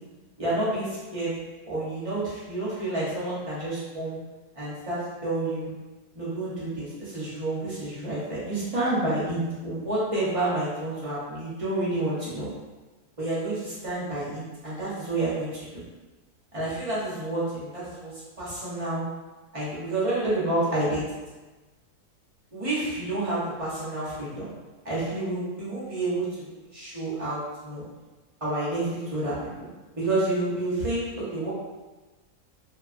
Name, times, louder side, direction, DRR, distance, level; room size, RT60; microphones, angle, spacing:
voice 1, 0.4-1.3 1.7-4.2 4.5-5.7 6.1-12.5 13.2-15.8 16.5-19.0 19.5-21.0 22.5-24.5 24.8-27.8 28.4-29.7 29.9-31.5, right 2 dB, 35° right, -9 dB, 0.5 m, -29 dB
3.0 x 2.3 x 2.4 m, 1.2 s
omnidirectional pair, 1.6 m